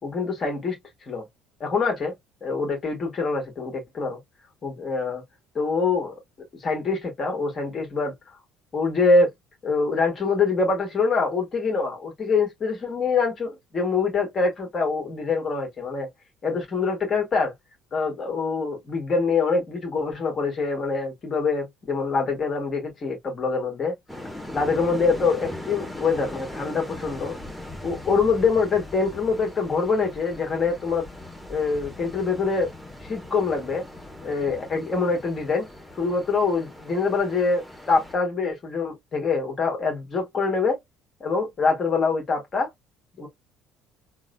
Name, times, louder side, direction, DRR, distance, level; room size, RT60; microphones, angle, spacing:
voice 1, 0.0-0.8 1.1-1.2 1.6-2.1 2.4-4.2 4.6-5.2 5.6-6.1 6.6-8.1 8.7-9.3 9.6-16.1 16.4-17.5 17.9-23.9 24.5-27.4 27.8-31.1 31.5-32.7 33.1-33.9 34.2-35.7 36.0-37.6 37.9-40.8 41.2-42.7 43.2-43.3, left 4 dB, 35° left, 1.8 m, -24 dB
sound 1, 24.1-38.2, left 1 dB, ahead, 1.3 m, -40 dB
3.7 x 2.4 x 2.2 m
figure-of-eight pair, 55°, 0 cm